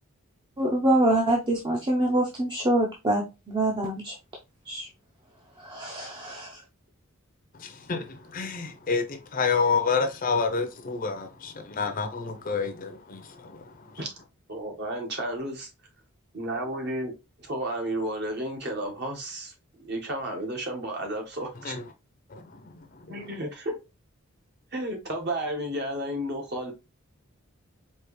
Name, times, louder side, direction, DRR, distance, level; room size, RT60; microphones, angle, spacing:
voice 1, 0.6-4.2 4.7-4.9 5.6-6.6, right 1 dB, 20° right, 0.6 m, -25 dB
voice 2, 7.5-14.0 21.6-21.8 22.3-23.2, left 5 dB, 40° left, 0.6 m, -29 dB
voice 3, 14.5-15.7 16.3-17.1 17.4-21.7 23.1-23.7 24.7-26.7, right 1 dB, 50° right, 1.3 m, -32 dB
4.6 x 2.9 x 3.1 m
head